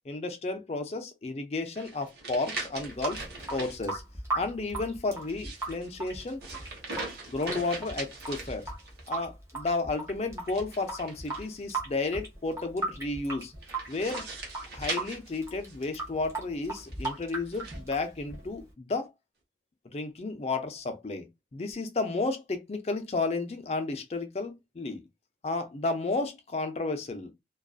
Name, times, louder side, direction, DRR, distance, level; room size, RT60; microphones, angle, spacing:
voice 1, 0.1-3.2 3.5-4.0 4.3-6.4 7.3-8.7 9.1-13.5 13.9-14.3 14.7-19.1 19.9-21.3 21.5-25.0 25.4-27.3, left 3 dB, 35° left, 0.4 m, -32 dB
sound 1, 1.7-3.8 5.2-9.1 10.5-11.8 13.6-16.0 16.8-17.8, right 3 dB, 70° right, 0.9 m, -41 dB
Water tap faucet / Sink (filling or washing) / Drip, 2.8-18.7, right 2 dB, 15° right, 0.7 m, -38 dB
2.5 x 2.3 x 2.3 m
head